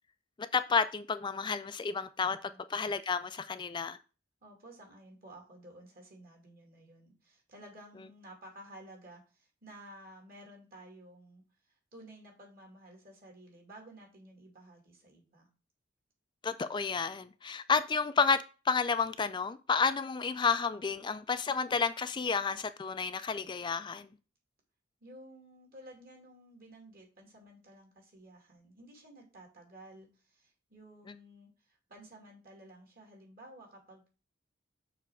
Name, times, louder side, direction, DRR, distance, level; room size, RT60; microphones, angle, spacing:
voice 1, 0.4-4.0 16.4-24.1, left 5 dB, 25° left, 0.4 m, -31 dB
voice 2, 4.4-11.4 11.9-15.5 25.0-34.1, right 1 dB, 50° right, 2.5 m, -53 dB
6.8 x 3.3 x 6.1 m
head